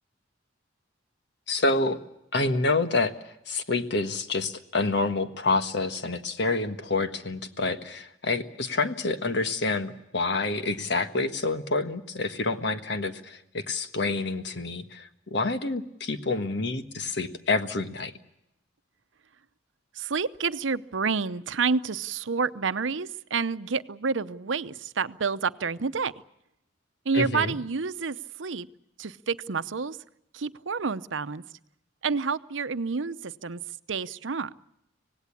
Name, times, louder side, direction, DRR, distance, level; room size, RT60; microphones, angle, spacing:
voice 1, 1.5-2.0 2.3-3.1 3.5-18.1 27.1-27.5, left 3 dB, 65° left, 9 dB, 1.5 m, -28 dB
voice 2, 19.9-26.1 27.0-28.7 29.0-30.0 30.3-31.4 32.0-33.6 33.9-34.5, right 5 dB, 90° right, 13 dB, 0.8 m, -29 dB
25.5 x 18.0 x 8.5 m, 0.84 s
head